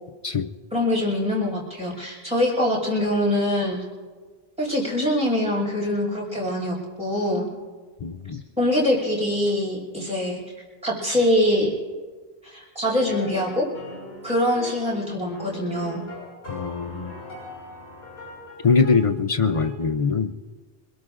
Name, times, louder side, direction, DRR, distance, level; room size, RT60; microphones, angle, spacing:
voice 1, 0.7-3.8 4.6-7.5 8.6-10.4 10.8-11.7 12.4-13.6 14.2-16.0, left 1 dB, 5° right, -5 dB, 5.4 m, -23 dB
voice 2, 8.0-8.4 16.5-17.1 18.6-20.3, left 5 dB, 40° left, 9 dB, 0.5 m, -22 dB
sound 1, 12.8-19.1 19.4-19.8, left 2 dB, 85° left, 6.7 m, -39 dB
25.5 x 22.0 x 2.5 m, 1.4 s
omnidirectional pair, 1.0 m